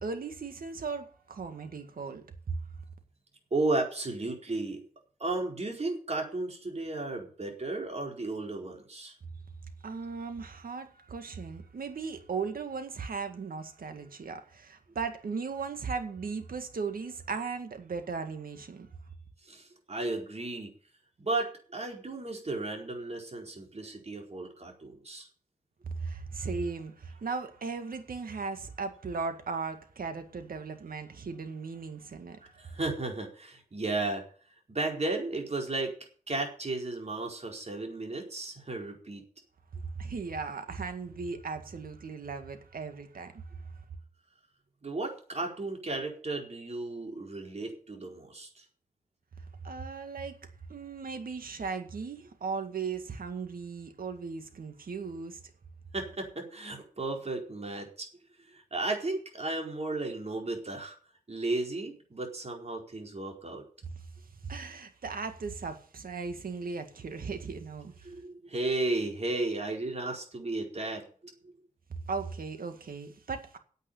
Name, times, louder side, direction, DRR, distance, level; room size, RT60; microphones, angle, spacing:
voice 1, 0.0-2.6 9.8-18.9 25.8-32.7 40.0-43.3 49.6-50.4 50.7-55.4 64.4-67.9 72.1-73.6, right 5 dB, 75° right, 2.1 m, -37 dB
voice 2, 3.5-4.8 5.2-9.1 19.5-20.7 21.2-25.3 32.6-34.2 34.7-35.9 36.3-39.2 44.8-48.6 55.9-58.1 58.5-61.0 61.3-63.6 68.0-71.5, right 2 dB, 45° right, 4.5 m, -34 dB
9.4 x 8.3 x 8.5 m
cardioid pair, 60°, 15 cm